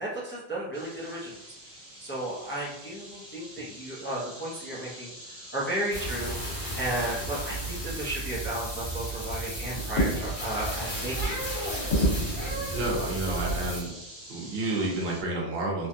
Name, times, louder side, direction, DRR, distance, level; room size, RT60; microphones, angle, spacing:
voice 1, 0.0-1.4 2.0-5.1 5.5-6.4 6.8-12.0, right 1 dB, 15° left, -6 dB, 0.6 m, -34 dB
sound 1, 0.7-15.2, right 1 dB, 40° right, 1.4 m, -45 dB
sound 2, 5.9-13.8, right 1 dB, 90° left, 1.4 m, -31 dB
voice 2, 12.7-13.9 14.3-15.9, right 2 dB, 70° right, -1 dB, 0.9 m, -30 dB
3.0 x 2.3 x 2.6 m, 0.88 s
omnidirectional pair, 1.1 m